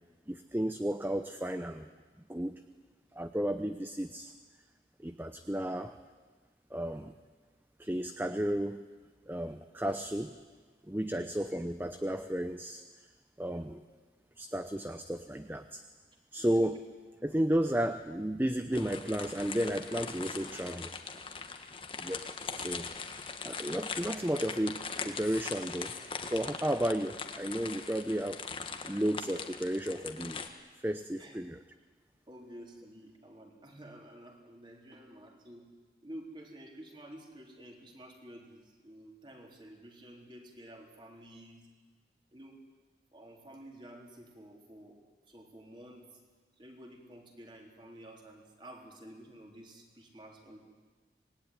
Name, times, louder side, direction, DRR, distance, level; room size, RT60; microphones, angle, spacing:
voice 1, 0.3-1.9 2.3-2.6 3.1-4.3 5.0-6.0 6.7-7.1 7.8-8.8 9.3-10.4 10.9-12.8 13.4-13.8 14.4-15.8 16.3-16.8 17.2-20.9 22.0-22.2 22.5-22.9 23.4-25.9 26.3-28.4 28.8-30.4 30.8-31.6, equal, 10° right, 9 dB, 0.7 m, -33 dB
sound 1, 18.7-30.5, left 5 dB, 30° left, 1.6 m, -41 dB
voice 2, 22.4-23.4 31.2-31.4 32.3-35.6 36.0-41.7 42.3-42.6 43.1-45.0 45.3-46.2 46.6-50.6, right 1 dB, 25° right, 1 dB, 3.8 m, -51 dB
25.5 x 20.0 x 9.9 m, 1.4 s
head